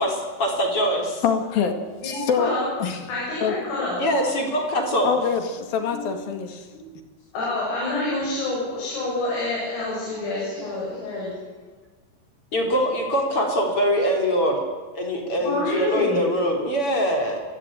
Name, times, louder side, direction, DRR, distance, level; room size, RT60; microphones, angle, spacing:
voice 1, 0.0-1.2 4.0-5.2 12.5-14.6 14.9-17.4, equal, 30° left, 2 dB, 3.9 m, -23 dB
voice 2, 1.2-1.8 2.0-2.5 2.8-3.0 3.4-3.5 5.0-6.7, left 7 dB, 55° left, 7 dB, 3.1 m, -24 dB
voice 3, 2.0-2.7 3.1-4.0 5.9-6.1 6.7-6.8 7.3-11.3 15.4-16.2, left 2 dB, 75° left, -5 dB, 10.5 m, -27 dB
29.5 x 16.0 x 9.1 m, 1.4 s
omnidirectional pair, 5.9 m